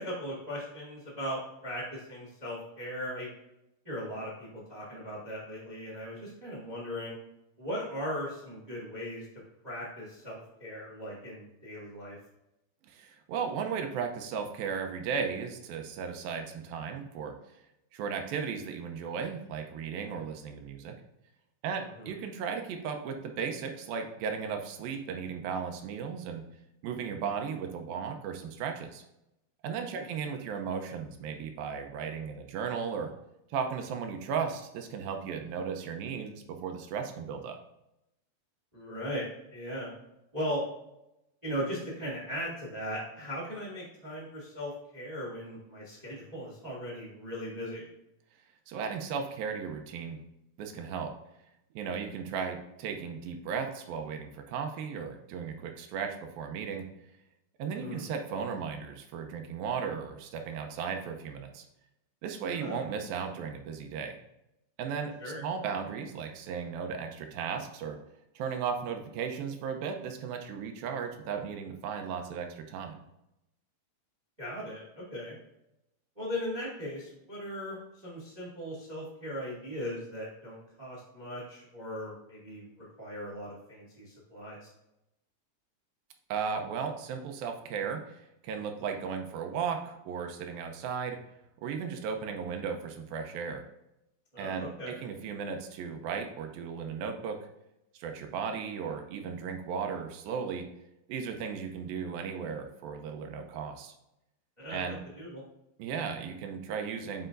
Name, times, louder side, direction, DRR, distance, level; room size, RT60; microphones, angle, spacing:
voice 1, 0.0-3.3 3.8-7.1 7.6-9.2 9.6-12.2 21.8-22.1 29.9-30.1 38.7-39.9 40.3-40.6 41.4-47.8 57.7-58.1 62.5-62.8 65.2-65.4 74.4-75.3 76.1-82.6 83.0-84.7 94.3-95.0 104.6-105.4, equal, 25° right, -4 dB, 0.8 m, -38 dB
voice 2, 12.8-17.3 17.9-20.9 21.6-26.4 26.8-29.0 29.6-33.1 33.5-37.6 48.7-50.2 50.6-51.1 51.8-56.9 57.6-61.7 62.2-64.2 64.8-65.1 65.4-68.0 68.4-73.0 86.3-91.2 91.6-93.6 94.4-97.4 98.0-100.6 101.1-103.9 104.7-105.0 105.8-107.3, right 6 dB, 75° right, 4 dB, 2.3 m, -35 dB
7.9 x 5.0 x 2.6 m, 0.86 s
omnidirectional pair, 4.7 m